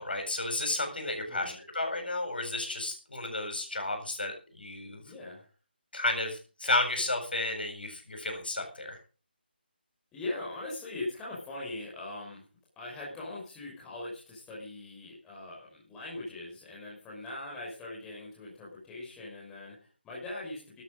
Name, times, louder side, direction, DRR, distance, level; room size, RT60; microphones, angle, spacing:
voice 1, 0.0-5.0 5.9-9.0, left 2 dB, 60° left, 4 dB, 7.7 m, -32 dB
voice 2, 1.3-1.6 5.0-5.5 10.1-12.4 12.8-20.8, left 2 dB, 10° left, -5 dB, 5.7 m, -41 dB
14.0 x 13.0 x 5.3 m, 0.36 s
figure-of-eight pair, 155°, 6 cm